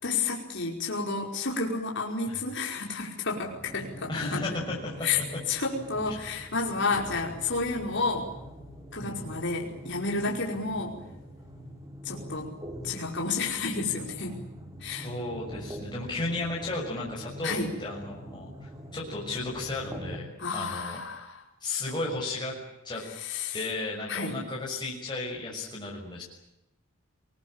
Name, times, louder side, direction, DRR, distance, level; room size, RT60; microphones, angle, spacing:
voice 1, 0.0-4.4 5.0-5.2 5.5-8.3 8.9-10.9 12.0-12.5 12.8-14.4 14.8-15.1 17.4-17.7 20.4-21.4 23.2-23.6 24.1-24.3, left 4 dB, 55° left, -1 dB, 5.2 m, -31 dB
sound 1, 3.4-20.2, equal, 15° right, 3.7 m, -44 dB
voice 2, 4.1-4.9 9.0-9.2 15.0-18.5 18.9-21.0 21.6-22.6 22.8-23.0 23.5-26.2, left 2 dB, 20° left, -4 dB, 6.4 m, -34 dB
27.5 x 20.5 x 9.0 m, 0.87 s
head